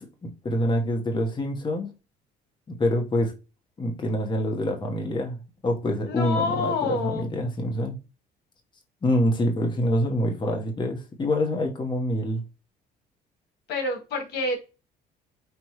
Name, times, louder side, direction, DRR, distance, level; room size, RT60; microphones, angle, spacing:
voice 1, 0.0-1.9 2.7-3.3 3.8-8.0 9.0-12.4, left 1 dB, 25° left, 1.2 m, -26 dB
voice 2, 6.0-7.3 13.7-14.6, left 3 dB, 75° left, 1.4 m, -27 dB
5.2 x 3.1 x 3.1 m
cardioid pair, 110°, 17 cm